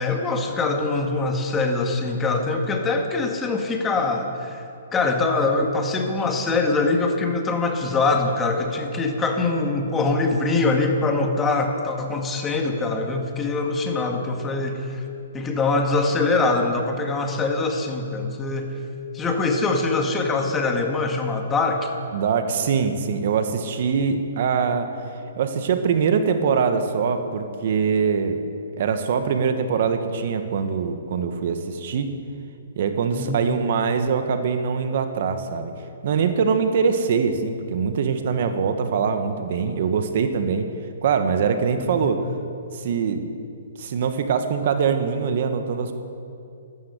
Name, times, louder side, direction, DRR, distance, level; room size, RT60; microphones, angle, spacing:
voice 1, 0.0-4.6 4.9-15.0 15.3-18.7 19.1-21.9 33.1-33.4 41.8-42.0, left 3 dB, 15° left, 3 dB, 1.9 m, -23 dB
voice 2, 22.1-24.9 25.4-28.4 28.8-32.2 32.7-35.7 36.0-40.7 41.0-42.3 42.7-43.2 43.8-45.9, right 6 dB, 55° right, 8 dB, 1.3 m, -23 dB
13.5 x 12.5 x 8.1 m, 2.6 s
hypercardioid pair, 135°, 0 cm